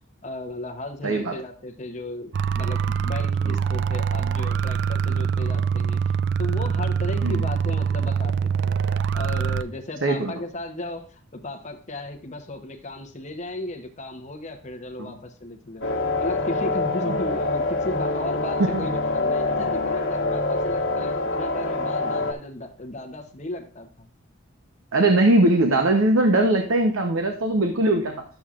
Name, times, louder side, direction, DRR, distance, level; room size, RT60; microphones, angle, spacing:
voice 1, 0.2-8.7 9.1-15.8 16.2-24.1, left 2 dB, 35° left, 5 dB, 0.8 m, -35 dB
voice 2, 1.0-1.3 3.4-3.6 7.2-7.4 10.0-10.3 15.0-15.1 17.1-17.2 18.7-18.8 24.9-28.2, right 2 dB, 85° right, 4 dB, 0.8 m, -20 dB
sound 1, 2.3-9.6, right 6 dB, 60° right, 0.3 m, -24 dB
sound 2, 15.8-22.3, left 2 dB, 70° left, 1.3 m, -25 dB
11.5 x 7.0 x 2.4 m, 0.43 s
head